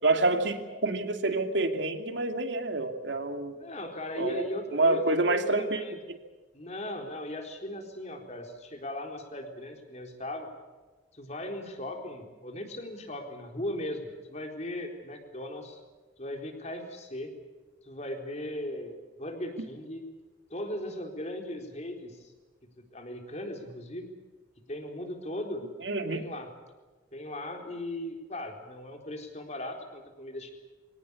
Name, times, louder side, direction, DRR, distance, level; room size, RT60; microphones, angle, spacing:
voice 1, 0.0-3.5 4.2-4.4 4.7-5.8 25.8-26.2, right 2 dB, 70° right, 6 dB, 2.6 m, -27 dB
voice 2, 3.5-6.0 6.5-10.5 11.1-15.8 16.2-17.3 17.8-20.0 20.5-22.2 22.9-24.1 24.7-25.7 26.1-26.5 27.1-30.5, left 1 dB, 35° left, 4 dB, 4.0 m, -38 dB
24.5 x 18.5 x 8.4 m, 1.3 s
head